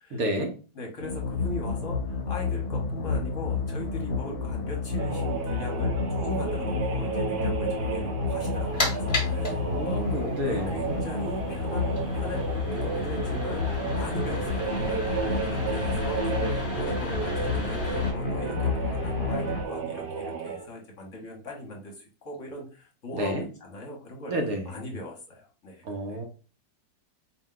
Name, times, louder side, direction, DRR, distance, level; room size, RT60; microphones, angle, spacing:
voice 1, 0.1-0.6 9.4-10.7 23.1-23.5 24.3-24.6 25.8-26.3, right 1 dB, 65° right, 4 dB, 1.1 m, -30 dB
voice 2, 0.7-12.5 12.7-24.3 24.6-26.2, left 1 dB, 55° left, 0 dB, 1.2 m, -40 dB
sound 1, 1.0-19.6, left 4 dB, 70° left, 1.1 m, -30 dB
sound 2, 5.0-20.7, right 6 dB, 85° right, 0.5 m, -33 dB
sound 3, 8.4-18.1, left 2 dB, 20° left, 1.2 m, -36 dB
4.3 x 2.2 x 3.7 m, 0.36 s
omnidirectional pair, 1.8 m